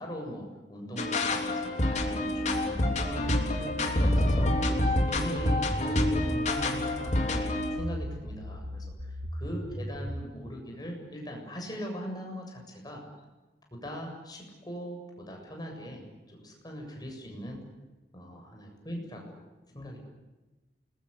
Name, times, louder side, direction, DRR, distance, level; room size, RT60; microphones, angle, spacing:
voice 1, 0.0-4.5 5.1-7.4 7.7-8.9 9.3-13.0 13.7-17.6 18.1-19.4 19.7-20.0, equal, 25° left, 1 dB, 7.5 m, -40 dB
sound 1, 1.0-7.8, left 1 dB, 40° left, 3.4 m, -27 dB
sound 2, 2.5-10.2, equal, 75° right, 3.1 m, -38 dB
28.5 x 21.5 x 8.3 m, 1.1 s
head